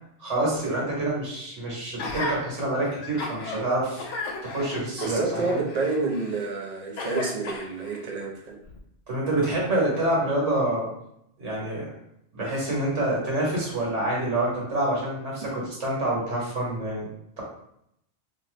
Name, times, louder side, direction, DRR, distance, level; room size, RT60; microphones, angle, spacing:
voice 1, 0.2-4.0 4.4-5.6 9.1-10.9 11.4-11.9 12.3-17.1, right 1 dB, 80° right, -4 dB, 1.5 m, -27 dB
Gasp, 2.0-2.4 2.9-3.6 4.0-6.5 7.0-8.0 8.7-8.8, left 3 dB, 85° left, 0.9 m, -35 dB
voice 2, 5.0-8.6, right 3 dB, 45° right, 0 dB, 0.5 m, -28 dB
2.6 x 2.5 x 3.1 m, 0.75 s
omnidirectional pair, 1.2 m